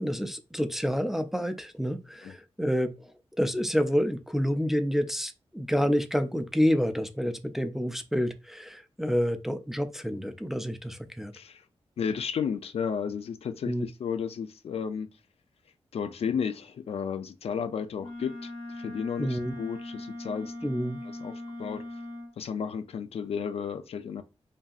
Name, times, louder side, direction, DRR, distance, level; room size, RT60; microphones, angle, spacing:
voice 1, 0.0-3.1 3.4-11.3 13.7-13.8 19.2-19.5 20.6-21.0, equal, 5° right, 0.3 m, -28 dB
voice 2, 11.3-11.6 12.0-15.1 15.9-20.7 21.0-21.8 22.4-24.2, left 7 dB, 75° left, 0.4 m, -33 dB
Wind instrument woodwind instrument, 18.0-22.4, left 1 dB, 45° left, 1.2 m, -40 dB
5.2 x 2.7 x 2.4 m
wide cardioid pair, 175°, 10 cm